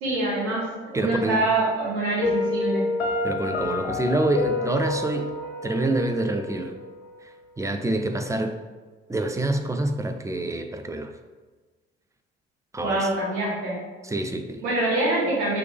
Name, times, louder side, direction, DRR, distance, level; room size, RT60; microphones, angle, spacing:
voice 1, 0.0-2.8 12.8-13.8 14.6-15.6, right 2 dB, 75° right, -5 dB, 1.3 m, -25 dB
voice 2, 0.9-1.4 3.2-5.3 5.6-6.7 7.2-7.3 7.6-8.6 9.1-11.1 12.7-13.1 14.0-14.6, right 2 dB, 10° right, 6 dB, 0.5 m, -26 dB
Piano, 2.2-7.2, left 3 dB, 85° left, 0.5 m, -29 dB
4.7 x 3.3 x 3.4 m, 1.3 s
hypercardioid pair, 50°, 30 cm